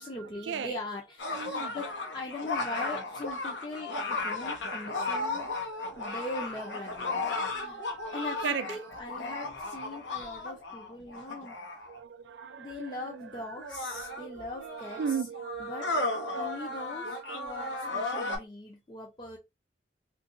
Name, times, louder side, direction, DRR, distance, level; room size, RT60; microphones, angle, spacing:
voice 1, 0.0-5.5 6.0-7.9 8.1-11.6 12.6-15.3 15.6-15.9 16.3-19.4, left 2 dB, 25° left, 0.5 m, -41 dB
sound 1, 1.2-12.0 12.9-13.0 13.6-18.4, left 3 dB, 85° left, 0.9 m, -35 dB
voice 2, 1.3-1.8 4.6-6.1 7.3-8.1 8.4-9.0 11.9-13.3 13.6-17.8, right 7 dB, 80° right, 0.4 m, -39 dB
2.8 x 2.6 x 3.7 m
head